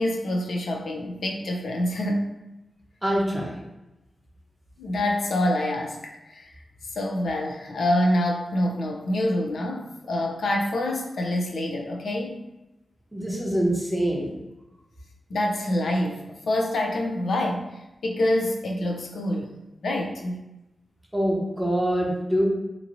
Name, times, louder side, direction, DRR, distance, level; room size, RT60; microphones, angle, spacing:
voice 1, 0.0-2.3 4.8-6.6 6.9-12.4 15.3-19.5 19.8-20.4, left 1 dB, 75° left, 1 dB, 0.5 m, -26 dB
voice 2, 3.0-3.6 13.1-14.3 21.1-22.4, equal, 5° right, -3 dB, 0.7 m, -24 dB
2.9 x 2.6 x 2.5 m, 0.96 s
wide cardioid pair, 95°, 0 cm